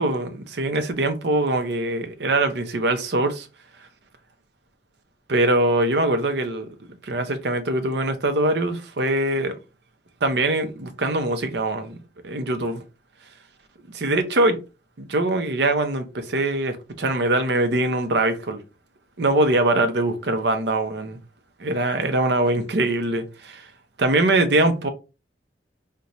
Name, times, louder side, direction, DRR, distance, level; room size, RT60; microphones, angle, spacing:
voice 1, 0.0-3.5 5.3-6.8 7.0-9.6 10.2-12.0 12.2-12.8 13.9-14.6 15.0-18.6 19.2-21.2 21.6-23.7 24.0-24.9, right 2 dB, 70° right, 0.6 m, -22 dB
3.9 x 2.2 x 2.9 m
head